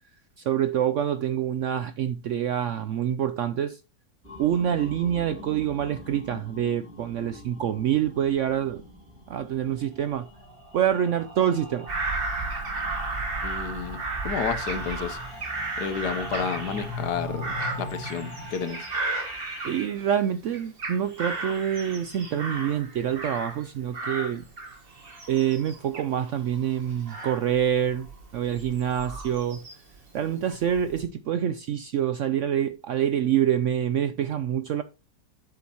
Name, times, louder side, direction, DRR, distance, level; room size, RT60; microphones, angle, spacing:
voice 1, 0.4-3.8 4.4-8.8 9.3-10.3 10.7-11.9 19.6-24.5 25.3-29.6 30.1-34.8, right 10 dB, 70° right, 0.7 m, -26 dB
sound 1, 4.2-19.9, left 1 dB, 10° right, 4.9 m, -41 dB
Bird vocalization bird call bird song / Crow, 11.9-20.2 20.5-23.7 23.9-30.0 30.5-31.0, right 3 dB, 35° right, 1.7 m, -34 dB
voice 2, 13.4-15.2 15.8-18.9, left 6 dB, 80° left, 1.5 m, -31 dB
8.7 x 7.1 x 2.9 m
omnidirectional pair, 1.8 m